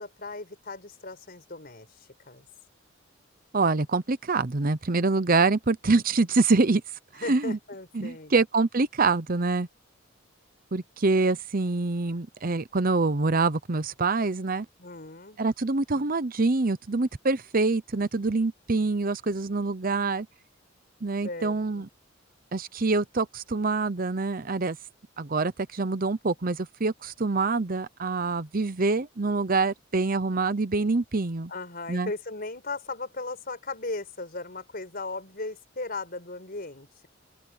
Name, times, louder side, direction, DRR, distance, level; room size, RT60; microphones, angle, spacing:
voice 1, 0.0-2.4 7.2-8.3 14.8-15.4 21.2-21.9 31.5-37.1, left 3 dB, 50° left, 5.0 m, -37 dB
voice 2, 3.5-6.8 7.3-7.6 7.9-9.7 10.7-14.7 15.4-20.3 21.0-21.9 22.5-24.8 25.2-31.5 31.9-32.1, right 3 dB, 45° right, 0.8 m, -25 dB
open air
head